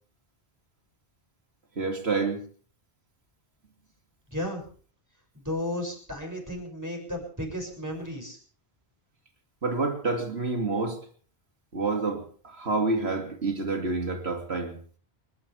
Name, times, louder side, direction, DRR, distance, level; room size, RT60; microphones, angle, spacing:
voice 1, 1.8-2.4 9.6-11.0 11.7-14.7, right 3 dB, 80° right, 4 dB, 3.0 m, -28 dB
voice 2, 4.3-4.6 5.3-8.4, left 1 dB, 15° right, 0 dB, 6.9 m, -34 dB
29.5 x 13.5 x 3.6 m, 0.43 s
omnidirectional pair, 1.1 m